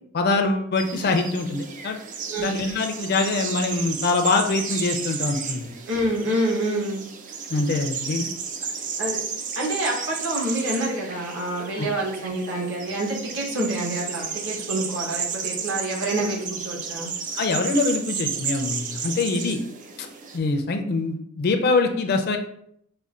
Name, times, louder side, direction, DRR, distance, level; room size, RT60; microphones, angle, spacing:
voice 1, 0.1-2.0 2.4-5.7 7.5-8.3 11.8-11.9 17.4-19.6 20.3-22.4, left 3 dB, 45° left, 5 dB, 0.4 m, -24 dB
sound 1, 0.8-20.4, right 6 dB, 35° right, 0.3 m, -33 dB
voice 2, 5.9-7.0 9.0-9.2 9.6-17.1, right 1 dB, 65° right, -3 dB, 1.1 m, -27 dB
5.3 x 2.1 x 2.4 m, 0.69 s
head